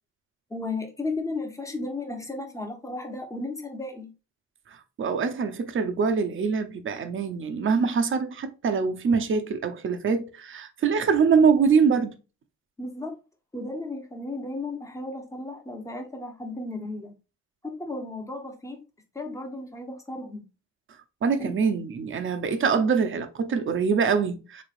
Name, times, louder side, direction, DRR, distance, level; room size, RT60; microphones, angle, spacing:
voice 1, 0.5-4.1 12.8-13.1 13.5-17.1 17.6-18.8 19.1-20.5 21.4-21.5, left 2 dB, 10° left, 0.9 m, -34 dB
voice 2, 4.7-12.2 21.2-24.6, right 5 dB, 40° right, 0.6 m, -24 dB
3.6 x 3.2 x 2.4 m
cardioid pair, 90°, 30 cm